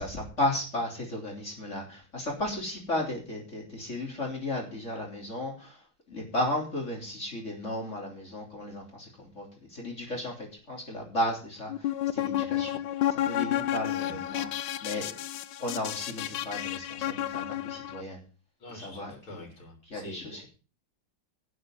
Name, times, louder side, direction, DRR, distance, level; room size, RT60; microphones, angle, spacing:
voice 1, 0.0-5.8 6.1-12.8 13.1-15.1 15.6-18.2 18.8-19.1 19.9-20.5, left 1 dB, 35° left, 0 dB, 3.6 m, -34 dB
sound 1, 11.7-18.0, left 12 dB, 70° left, 1.3 m, -31 dB
voice 2, 18.6-20.3, left 1 dB, 85° left, 2 dB, 4.6 m, -45 dB
12.0 x 6.5 x 7.7 m, 0.36 s
omnidirectional pair, 2.2 m